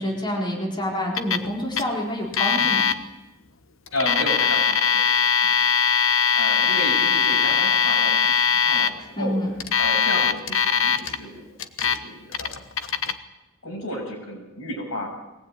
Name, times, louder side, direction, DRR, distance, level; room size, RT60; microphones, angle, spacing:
voice 1, 0.0-2.9 9.2-9.5, equal, 20° left, -1 dB, 4.1 m, -27 dB
Alarm, 1.2-1.5 1.7-1.8 2.3-2.9 3.9-8.9 9.6-11.2 11.6-12.0 12.3-13.1, left 6 dB, 70° left, 1.3 m, -21 dB
voice 2, 3.9-5.6 6.3-9.4 9.8-11.4 11.8-12.6 13.6-15.1, left 1 dB, 90° left, 2 dB, 6.7 m, -32 dB
21.5 x 18.5 x 9.1 m, 1.0 s
head